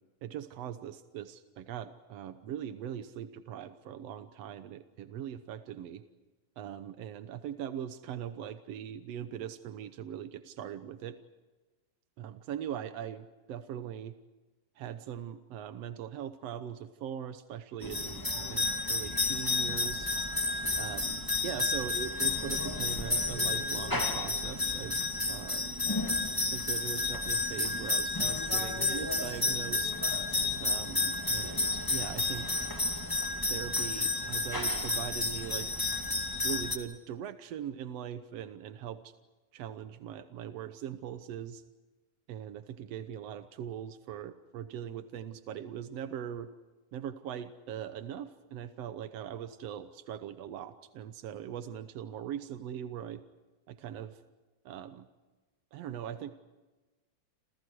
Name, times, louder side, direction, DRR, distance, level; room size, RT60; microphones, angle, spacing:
voice 1, 0.2-6.0 6.6-11.2 12.2-14.2 14.8-20.1 20.8-25.0 25.3-25.8 26.5-29.9 30.6-32.6 33.5-35.7 36.4-39.0 39.5-41.6 42.3-46.5 46.9-53.2 53.7-54.2 54.6-55.1 55.7-56.3, right 9 dB, 75° right, 10 dB, 1.5 m, -41 dB
sound 1, 17.8-36.8, left 2 dB, 10° left, 1.6 m, -31 dB
28.5 x 28.5 x 4.7 m, 1.2 s
omnidirectional pair, 4.2 m